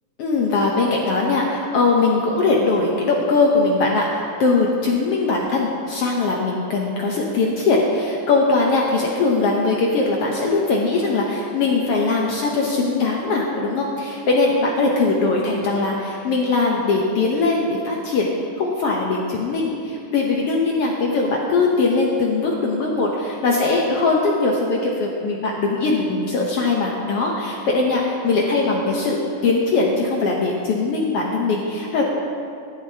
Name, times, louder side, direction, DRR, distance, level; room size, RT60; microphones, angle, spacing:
voice 1, 0.2-18.3 18.6-32.0, left 3 dB, 70° left, -1 dB, 1.4 m, -20 dB
14.0 x 11.5 x 2.8 m, 2.5 s
omnidirectional pair, 3.6 m